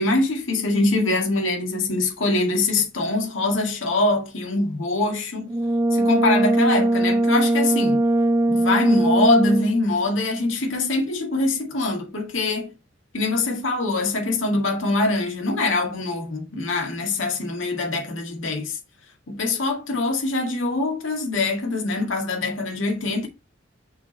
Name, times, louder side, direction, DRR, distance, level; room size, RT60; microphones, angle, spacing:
voice 1, 0.0-5.5 5.9-8.0 8.5-12.7 13.1-18.8 19.3-23.3, left 2 dB, 80° left, 1.9 m, -23 dB
Brass instrument, 5.5-9.9, right 1 dB, 15° right, 0.4 m, -20 dB
6.0 x 4.6 x 4.3 m
head